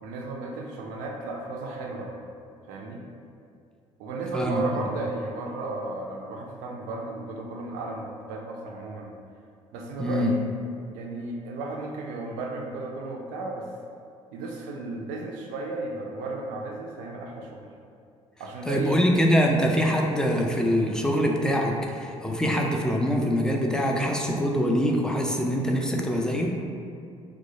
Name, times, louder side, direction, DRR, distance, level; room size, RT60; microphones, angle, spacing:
voice 1, 0.0-2.1 2.7-3.0 4.0-9.1 9.7-10.4 10.9-13.7 14.3-17.7 18.4-19.0, right 2 dB, 55° right, -1 dB, 0.4 m, -34 dB
voice 2, 10.0-10.3 18.7-26.6, equal, 5° left, 0 dB, 0.4 m, -24 dB
2.9 x 2.2 x 4.0 m, 2.4 s
figure-of-eight pair, 55°, 17 cm